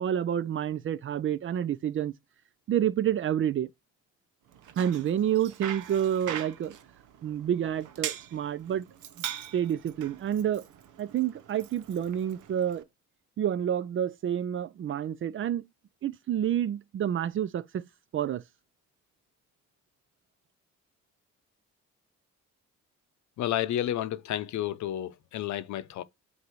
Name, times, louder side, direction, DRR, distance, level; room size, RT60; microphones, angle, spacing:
voice 1, 0.0-2.1 2.7-3.7 4.8-6.7 7.2-8.9 9.5-10.6 11.0-12.8 13.4-15.7 16.0-17.8 18.1-18.4, right 10 dB, 45° right, 0.4 m, -29 dB
Bicycle, 4.5-12.8, right 10 dB, 80° right, 0.8 m, -42 dB
voice 2, 23.4-26.0, left 12 dB, 70° left, 0.7 m, -31 dB
8.0 x 2.7 x 4.5 m
cardioid pair, 90°, 30 cm